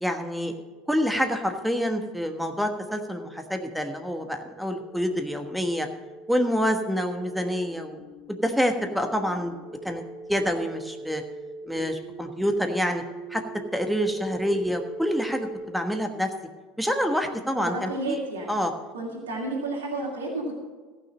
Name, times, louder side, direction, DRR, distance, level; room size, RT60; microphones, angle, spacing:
voice 1, 0.0-0.5 0.9-5.9 6.3-8.0 8.3-9.5 9.8-10.0 10.3-11.2 11.7-13.0 13.3-13.4 13.7-16.3 16.8-18.2 18.5-18.7, equal, ahead, 5 dB, 1.2 m, -27 dB
sound 1, 2.5-15.6, right 2 dB, 50° left, 3.8 m, -42 dB
voice 2, 17.6-18.5 18.9-20.5, right 2 dB, 90° right, -2 dB, 2.5 m, -31 dB
14.5 x 6.0 x 7.5 m, 1.4 s
hypercardioid pair, 85°, 0 cm